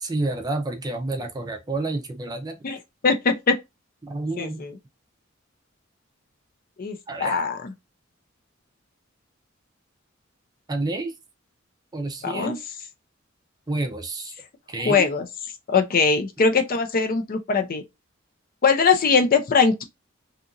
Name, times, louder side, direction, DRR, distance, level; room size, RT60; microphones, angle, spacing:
voice 1, 0.0-2.6 4.0-4.6 7.1-7.4 10.7-11.1 11.9-12.6 13.7-14.3 14.7-15.1, right 2 dB, 20° right, 0.5 m, -29 dB
voice 2, 3.0-3.6 4.4-4.7 6.8-7.7 12.2-12.6 14.8-15.3 15.7-17.8 18.6-19.8, left 5 dB, 45° left, 0.5 m, -21 dB
2.8 x 2.5 x 2.5 m
head